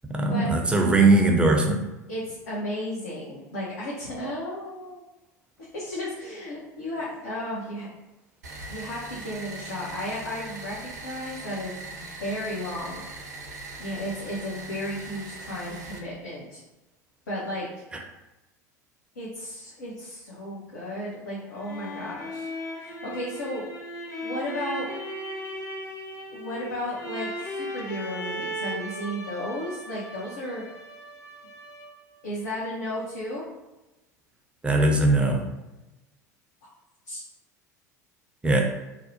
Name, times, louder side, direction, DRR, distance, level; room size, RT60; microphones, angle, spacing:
voice 1, 0.1-1.8 34.6-35.5 38.4-38.6, right 2 dB, 10° right, 2 dB, 0.5 m, -20 dB
voice 2, 2.1-5.0 5.7-7.9 8.7-13.0 13.8-16.6 17.3-17.7 19.1-22.5 22.8-23.6 24.2-24.9 26.3-30.6 32.2-33.4 37.1-37.2, left 1 dB, 75° left, -7 dB, 0.7 m, -34 dB
sound 1, 8.4-16.0, right 2 dB, 75° right, 0.4 m, -40 dB
sound 2, 21.5-32.2, equal, 35° left, 0.6 m, -37 dB
2.6 x 2.0 x 2.8 m, 1.0 s
figure-of-eight pair, 75°, 9 cm